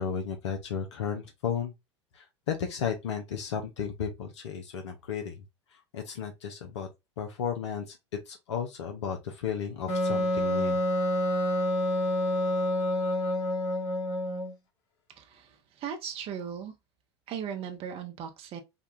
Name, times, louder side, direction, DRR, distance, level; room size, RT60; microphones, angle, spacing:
voice 1, 0.0-1.7 2.1-5.4 5.9-6.9 7.2-8.0 8.3-10.8, left 7 dB, 75° left, 0.7 m, -34 dB
Wind instrument woodwind instrument, 9.9-14.5, left 1 dB, 50° left, 1.7 m, -28 dB
voice 2, 15.2-16.7 17.3-18.6, right 8 dB, 40° right, 0.7 m, -38 dB
5.1 x 2.3 x 2.5 m
hypercardioid pair, 85°, 15 cm